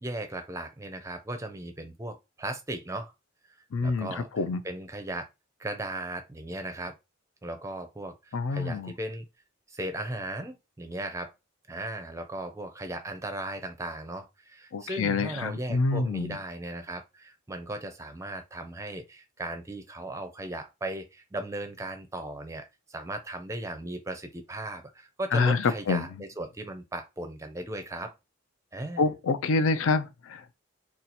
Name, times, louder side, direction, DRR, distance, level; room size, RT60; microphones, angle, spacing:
voice 1, 0.0-3.1 3.8-5.3 5.6-6.9 7.4-9.3 9.7-11.3 11.7-28.1 28.7-29.1, right 1 dB, 15° right, 0.4 m, -37 dB
voice 2, 3.7-4.6 8.3-8.9 14.7-16.4 25.3-26.1 29.0-30.5, left 3 dB, 80° left, 0.4 m, -27 dB
2.8 x 2.3 x 4.0 m
head